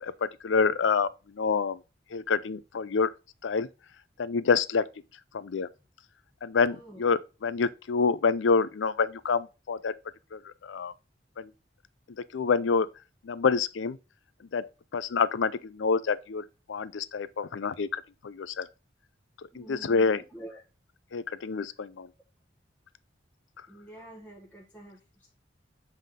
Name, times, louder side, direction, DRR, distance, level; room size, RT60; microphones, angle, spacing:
voice 1, 0.0-1.1 1.4-1.8 2.1-3.1 3.4-3.7 4.2-4.8 5.3-5.7 6.4-9.9 10.3-10.9 11.4-11.5 12.3-12.9 13.2-14.0 14.5-16.4 16.7-18.7 19.6-20.2 21.1-22.1, left 5 dB, 80° left, 0.5 m, -27 dB
voice 2, 6.7-7.0 19.5-20.6 23.7-25.3, right 1 dB, 10° left, 1.3 m, -47 dB
7.5 x 3.6 x 3.7 m
head